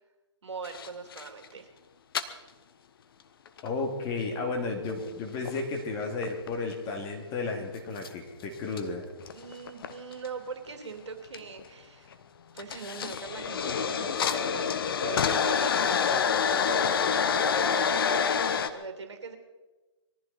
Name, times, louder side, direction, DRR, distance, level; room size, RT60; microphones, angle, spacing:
voice 1, 0.4-1.7 9.3-12.2 12.5-17.8 18.7-19.4, right 4 dB, 70° right, 5 dB, 2.9 m, -41 dB
sound 1, 0.6-1.5 2.1-2.2 3.5-3.7 4.2-4.3 4.8-5.6 6.1-6.7 8.0-8.1 8.7-8.8 9.2-10.3 11.3-11.6 12.1-12.2 12.6-18.7, left 7 dB, 50° left, 1.3 m, -27 dB
voice 2, 3.6-9.1, left 3 dB, 25° left, 2 dB, 2.6 m, -33 dB
22.0 x 14.5 x 4.3 m, 1.1 s
figure-of-eight pair, 140°, 15 cm